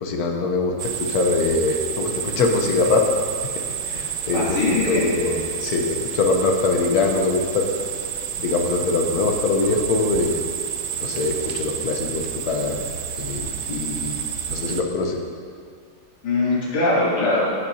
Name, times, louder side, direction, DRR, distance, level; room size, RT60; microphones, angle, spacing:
voice 1, 0.0-3.1 3.8-4.6 4.9-7.7 8.4-10.4 11.0-12.8 13.2-15.2, left 3 dB, 55° left, 2 dB, 1.1 m, -23 dB
sound 1, 0.8-14.8, right 8 dB, 85° right, 0.8 m, -30 dB
voice 2, 4.3-5.0 16.2-17.6, left 2 dB, 90° left, -9 dB, 3.6 m, -21 dB
15.0 x 6.7 x 2.8 m, 2.1 s
omnidirectional pair, 2.4 m